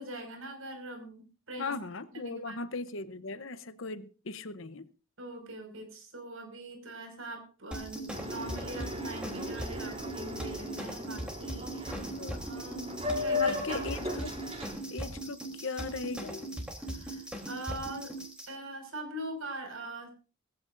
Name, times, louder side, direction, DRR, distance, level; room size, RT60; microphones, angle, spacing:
voice 1, 0.0-1.8 2.1-2.6 5.2-12.1 12.4-13.8 16.8-18.1 18.5-20.1, right 1 dB, 80° right, 5.7 m, -42 dB
voice 2, 1.6-4.9 12.0-12.4 13.4-14.4 14.9-16.5, left 4 dB, 70° left, 0.9 m, -38 dB
sound 1, 7.7-18.5, right 1 dB, 5° right, 3.3 m, -40 dB
Boat Water vehicle, 8.1-14.7, left 2 dB, 30° right, 4.8 m, -36 dB
21.0 x 15.0 x 2.6 m
head